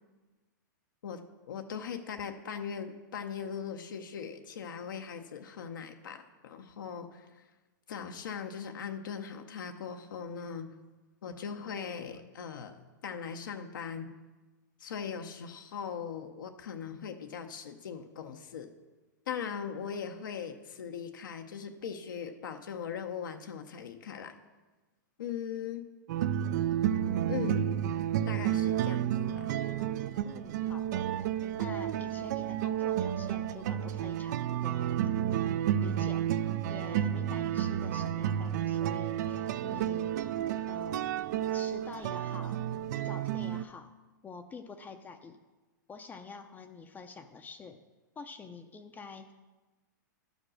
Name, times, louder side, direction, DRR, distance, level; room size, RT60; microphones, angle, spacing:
voice 1, 1.5-7.5 7.9-10.8 11.2-14.1 14.8-18.7 19.3-24.4 25.2-25.8 27.3-27.7 28.3-29.5, left 7 dB, 80° left, 5 dB, 0.8 m, -40 dB
sound 1, 26.1-43.6, right 10 dB, 60° right, 0.4 m, -31 dB
voice 2, 30.2-36.2 36.7-40.4 40.7-41.1 41.5-42.6 43.0-43.9 44.2-45.4 45.9-47.8 48.2-49.3, left 5 dB, 15° left, 6 dB, 0.5 m, -48 dB
11.5 x 5.2 x 6.3 m, 1.2 s
hypercardioid pair, 125°, 11 cm